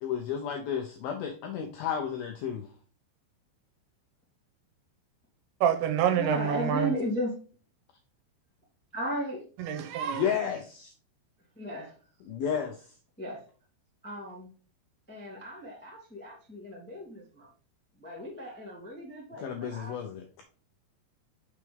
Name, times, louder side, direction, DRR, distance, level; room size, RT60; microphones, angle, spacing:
voice 1, 0.0-2.7 10.1-10.9 12.3-12.9 19.4-20.4, left 8 dB, 80° left, 2.1 m, -32 dB
voice 2, 5.6-6.9 9.6-10.2, right 9 dB, 80° right, 2.9 m, -27 dB
voice 3, 6.1-7.3 8.9-9.4 11.5-11.9 13.2-13.4 14.0-14.5 15.1-17.5 18.0-20.0, equal, 15° left, 0.4 m, -35 dB
6.6 x 6.5 x 3.4 m
omnidirectional pair, 5.3 m